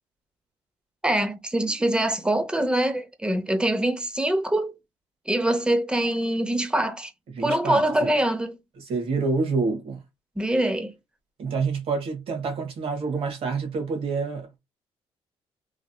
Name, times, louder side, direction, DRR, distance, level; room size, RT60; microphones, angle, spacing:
voice 1, 1.0-4.8 5.3-7.1 7.4-8.6 10.4-10.9, right 1 dB, 10° right, 0.6 m, -24 dB
voice 2, 7.3-8.1 8.8-10.0 11.4-14.6, right 4 dB, 70° right, 1.5 m, -27 dB
3.3 x 2.7 x 2.2 m
cardioid pair, 105°, 10 cm